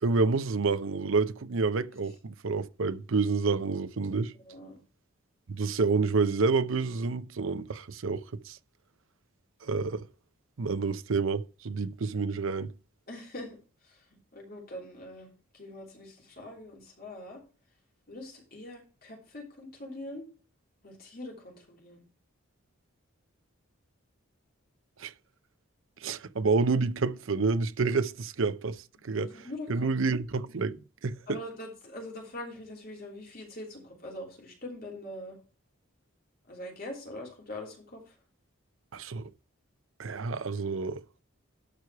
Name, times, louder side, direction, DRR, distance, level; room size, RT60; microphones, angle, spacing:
voice 1, 0.0-4.3 5.5-8.6 9.6-10.0 10.6-12.7 25.0-25.1 26.0-30.8 31.0-31.4 38.9-39.3 40.0-41.0, right 4 dB, 65° right, 0.6 m, -29 dB
voice 2, 4.4-4.8 13.1-13.6 13.9-15.3 15.5-17.4 18.1-20.3 20.8-22.0 29.1-29.9 31.3-35.4 36.5-38.1, left 1 dB, 45° left, 3.2 m, -43 dB
11.5 x 4.9 x 4.7 m
head